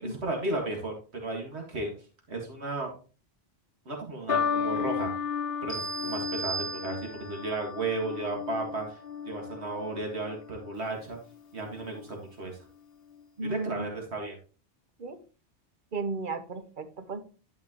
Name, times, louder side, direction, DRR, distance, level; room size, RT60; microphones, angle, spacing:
voice 1, 0.0-1.9 2.3-2.9 3.9-5.1 5.6-9.0 9.2-11.2 11.5-12.6 13.4-14.4, right 2 dB, 80° right, 1 dB, 2.2 m, -34 dB
sound 1, 4.3-10.8 11.7-12.1, left 7 dB, 65° left, 0.9 m, -34 dB
sound 2, 5.7-7.4, right 4 dB, 25° right, 2.1 m, -36 dB
voice 2, 13.4-13.9 15.0-15.2 15.9-17.2, right 3 dB, 50° right, 9 dB, 1.0 m, -34 dB
11.0 x 5.3 x 3.0 m, 0.36 s
omnidirectional pair, 1.1 m